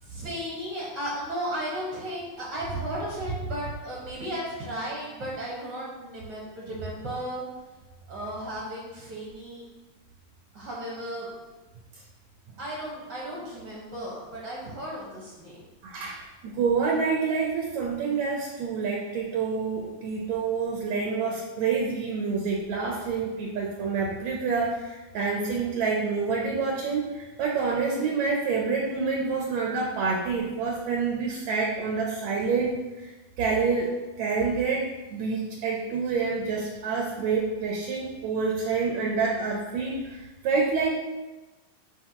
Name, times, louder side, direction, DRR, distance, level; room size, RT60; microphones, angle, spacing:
voice 1, 0.0-7.4 8.1-9.7 10.5-11.3 12.6-15.6, right 1 dB, 55° right, -5 dB, 1.2 m, -35 dB
voice 2, 15.8-33.1 33.4-33.9 34.2-40.9, right 4 dB, 75° right, 0 dB, 1.7 m, -27 dB
8.4 x 5.0 x 2.9 m, 1.1 s
omnidirectional pair, 4.1 m